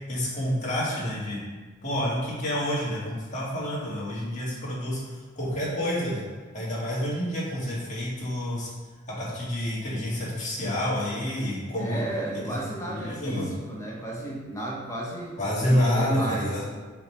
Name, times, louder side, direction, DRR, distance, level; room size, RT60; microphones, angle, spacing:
voice 1, 0.1-1.4 1.8-5.0 5.4-6.2 6.5-8.7 9.2-12.0 12.3-12.5 12.9-13.5 15.4-16.6, equal, 35° left, -7 dB, 1.9 m, -28 dB
voice 2, 11.8-16.6, right 1 dB, 15° left, -3 dB, 1.1 m, -33 dB
5.5 x 3.5 x 5.5 m, 1.3 s
head